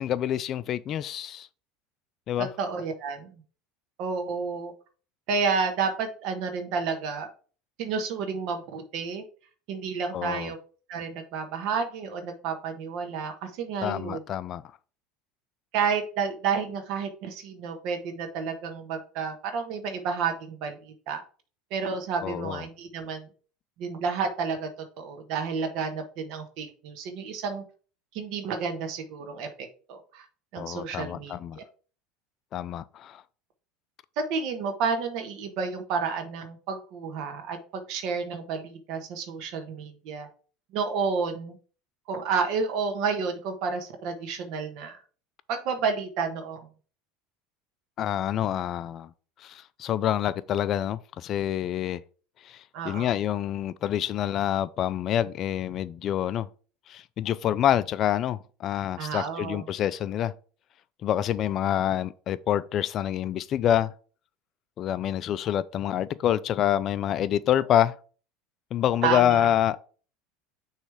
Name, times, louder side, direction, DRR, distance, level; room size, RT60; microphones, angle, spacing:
voice 1, 0.0-1.5 2.3-2.5 10.1-10.5 13.8-14.6 22.2-22.6 30.6-31.6 32.5-33.2 48.0-49.1 49.4-52.0 52.4-56.5 56.9-60.3 61.0-63.9 64.8-67.9 68.7-69.8, left 11 dB, 40° left, 0.4 m, -27 dB
voice 2, 2.4-3.4 4.0-4.7 5.3-7.3 7.8-9.2 9.7-10.6 10.9-14.2 15.7-21.2 21.7-23.3 23.8-24.7 25.0-27.6 28.1-30.3 30.5-31.6 34.2-40.3 40.7-41.6 42.1-45.0 45.5-46.7 52.7-53.1 59.0-59.7 69.0-69.5, right 5 dB, 60° right, 1.2 m, -30 dB
6.4 x 3.2 x 4.9 m
supercardioid pair, 130°, 0 cm